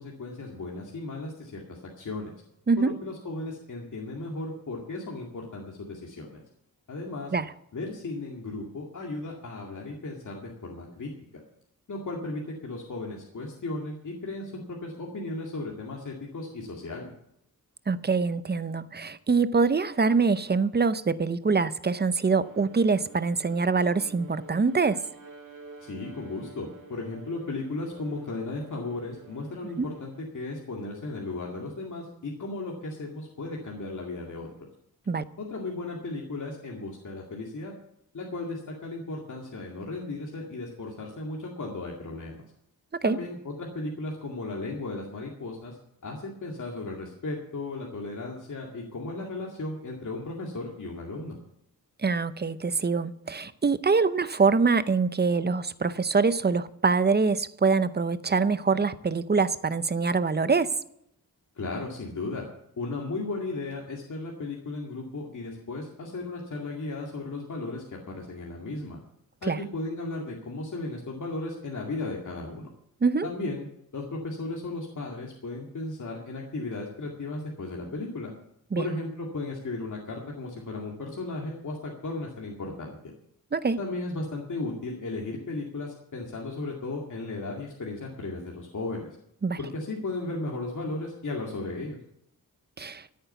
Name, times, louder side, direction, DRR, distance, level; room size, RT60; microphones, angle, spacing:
voice 1, 0.0-2.3 2.8-6.4 6.9-7.3 7.7-11.4 11.9-17.1 25.8-34.5 35.4-37.7 38.1-42.4 43.0-45.8 46.0-51.4 61.6-62.4 62.8-69.0 69.4-72.7 73.2-73.7 73.9-78.3 78.8-83.0 83.8-89.1 89.6-92.0, left 2 dB, 55° left, 2.3 m, -35 dB
voice 2, 17.9-25.0 29.8-29.9 35.1-35.2 43.0-43.2 52.0-60.7 69.5-69.6 73.0-73.3 78.7-78.8 83.5-83.8 89.4-89.6 92.8-93.0, right 4 dB, 30° right, 0.6 m, -24 dB
Bowed string instrument, 21.9-30.3, right 3 dB, 60° right, 1.5 m, -49 dB
14.0 x 9.0 x 6.9 m
wide cardioid pair, 175°, 36 cm